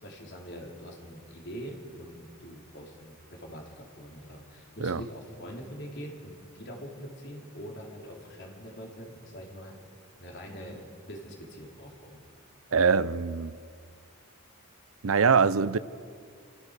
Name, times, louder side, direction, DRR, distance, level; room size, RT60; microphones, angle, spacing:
voice 1, 0.0-9.7 10.2-10.8 11.1-12.2, equal, 55° left, 3.7 m, -43 dB
voice 2, 12.7-13.5 15.0-15.8, right 5 dB, 75° right, 0.6 m, -23 dB
29.5 x 14.5 x 6.6 m
head